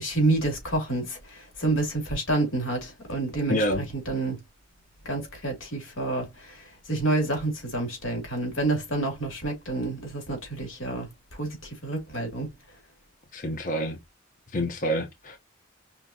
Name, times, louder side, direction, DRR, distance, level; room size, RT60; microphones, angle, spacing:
voice 1, 0.0-4.4 5.0-12.5, right 2 dB, 85° left, 2.7 m, -29 dB
voice 2, 3.5-3.8 13.3-14.0 14.5-15.4, equal, 40° left, 0.8 m, -27 dB
5.1 x 3.7 x 2.8 m
head